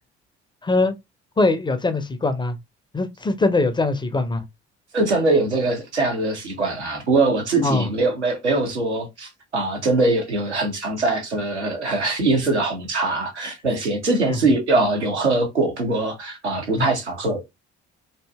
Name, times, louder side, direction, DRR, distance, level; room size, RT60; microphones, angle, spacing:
voice 1, 0.6-0.9 1.4-2.6 2.9-4.4 7.6-7.9 14.3-14.4 16.8-16.9, left 2 dB, 15° left, 0.4 m, -22 dB
voice 2, 4.9-17.5, right 2 dB, 85° right, 0.8 m, -22 dB
2.7 x 2.6 x 2.2 m
figure-of-eight pair, 50°, 33 cm